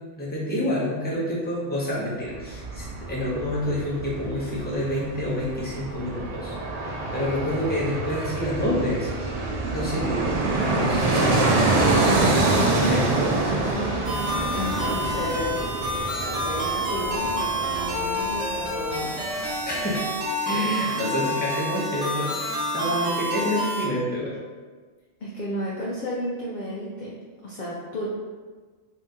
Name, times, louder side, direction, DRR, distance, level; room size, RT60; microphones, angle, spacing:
voice 1, 0.0-9.3 9.7-11.7 12.8-13.9 19.7-20.1 20.4-24.3, equal, 10° left, -7 dB, 0.7 m, -28 dB
Fixed-wing aircraft airplane, 2.2-19.2 19.5-19.6, right 2 dB, 70° right, 0.3 m, -26 dB
voice 2, 11.1-11.4 14.5-15.6 16.4-19.3 25.2-27.2 27.4-28.1, equal, 55° left, -4 dB, 0.5 m, -32 dB
sound 1, 14.0-23.8, equal, 85° right, 1.3 m, -28 dB
2.7 x 2.7 x 3.5 m, 1.4 s
omnidirectional pair, 1.2 m